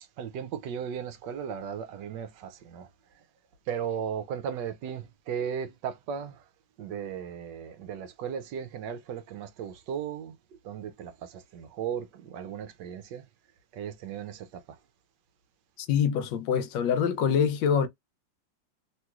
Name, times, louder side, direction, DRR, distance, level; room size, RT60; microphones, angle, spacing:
voice 1, 0.2-2.9 3.7-6.4 6.8-10.4 10.6-13.3 13.7-14.8, right 8 dB, 75° right, 1.2 m, -36 dB
voice 2, 15.8-17.9, left 7 dB, 75° left, 1.3 m, -25 dB
3.1 x 3.0 x 2.3 m
omnidirectional pair, 2.0 m